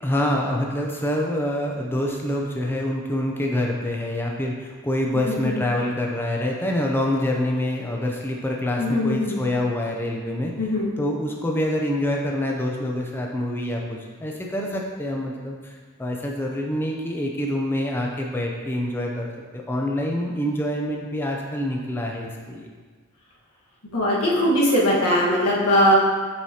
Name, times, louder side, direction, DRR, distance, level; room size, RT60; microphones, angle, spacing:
voice 1, 0.0-10.5 11.0-19.3 19.5-22.7, left 1 dB, 10° left, -1 dB, 0.4 m, -26 dB
voice 2, 8.8-9.3 10.6-10.9 23.9-25.9, equal, 85° left, -5 dB, 1.4 m, -20 dB
7.0 x 4.8 x 2.8 m, 1.5 s
head